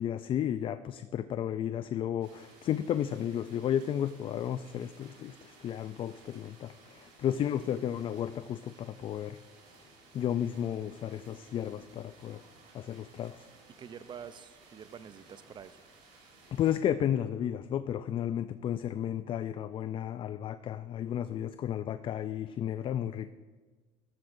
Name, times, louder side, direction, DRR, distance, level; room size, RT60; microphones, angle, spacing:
voice 1, 0.0-9.4 10.1-12.4 12.7-13.5 16.5-23.3, left 10 dB, 40° left, 12 dB, 0.4 m, -33 dB
sound 1, 2.2-16.8, right 3 dB, 75° right, 4.3 m, -58 dB
voice 2, 13.8-15.8, right 8 dB, 35° right, 14 dB, 0.6 m, -47 dB
15.0 x 13.0 x 2.6 m, 1.4 s
supercardioid pair, 95°, 14 cm